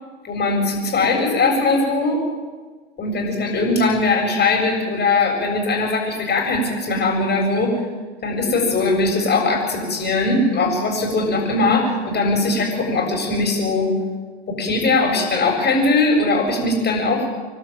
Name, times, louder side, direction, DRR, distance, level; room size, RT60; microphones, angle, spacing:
voice 1, 0.2-2.2 3.0-7.8 8.2-14.0 14.5-17.3, left 3 dB, 30° left, 1 dB, 7.6 m, -20 dB
25.5 x 12.5 x 9.2 m, 1.4 s
hypercardioid pair, 90°, 32 cm